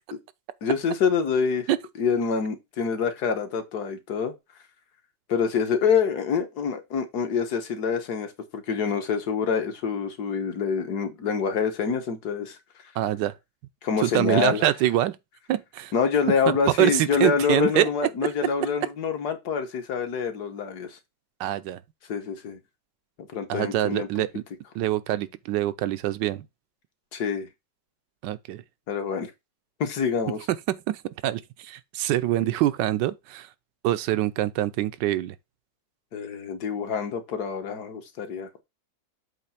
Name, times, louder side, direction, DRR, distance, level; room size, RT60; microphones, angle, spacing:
voice 1, 0.6-1.7 2.0-4.3 5.3-12.6 13.8-14.6 15.9-21.0 22.1-22.6 23.2-24.1 27.1-27.5 28.9-29.3 29.8-30.4 36.1-38.6, left 6 dB, 65° left, 1.6 m, -26 dB
voice 2, 13.0-13.3 14.0-15.2 15.5-15.9 16.5-17.9 21.4-21.8 23.5-24.4 24.7-26.5 28.2-28.6 30.5-33.5 33.8-35.4, right 14 dB, 85° right, 1.3 m, -25 dB
7.6 x 3.2 x 5.6 m
omnidirectional pair, 1.9 m